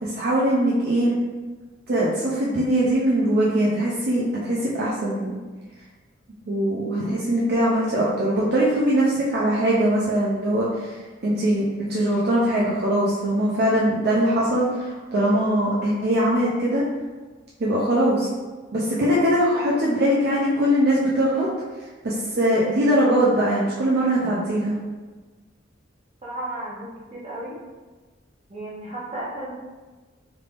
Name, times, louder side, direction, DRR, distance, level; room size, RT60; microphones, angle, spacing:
voice 1, 0.0-1.1 1.9-5.3 6.5-11.0 11.2-16.8 17.6-18.3 18.7-21.5 22.0-24.8, right 1 dB, 55° right, -6 dB, 0.5 m, -21 dB
voice 2, 26.2-27.6 28.5-29.5, right 1 dB, 35° right, -6 dB, 0.9 m, -34 dB
3.3 x 3.3 x 2.4 m, 1.3 s
head